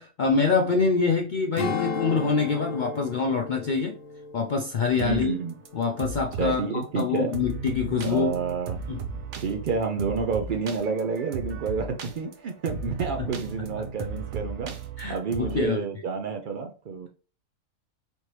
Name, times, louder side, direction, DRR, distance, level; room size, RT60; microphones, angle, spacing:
voice 1, 0.0-4.0 4.3-5.4 5.7-8.4 8.9-9.0 15.0-15.8, left 5 dB, 85° left, 2 dB, 0.4 m, -25 dB
Strum, 1.6-6.3 6.6-6.9, left 4 dB, 50° left, 0.8 m, -36 dB
sound 1, 4.9-5.2 5.5-6.6 7.0-7.1 7.3-15.7, right 4 dB, 60° right, 0.9 m, -35 dB
voice 2, 5.0-5.6 6.4-7.3 8.0-8.8 9.4-14.7 15.1-17.1, right 5 dB, 85° right, 4 dB, 0.4 m, -29 dB
4.3 x 3.0 x 3.1 m, 0.37 s
omnidirectional pair, 1.5 m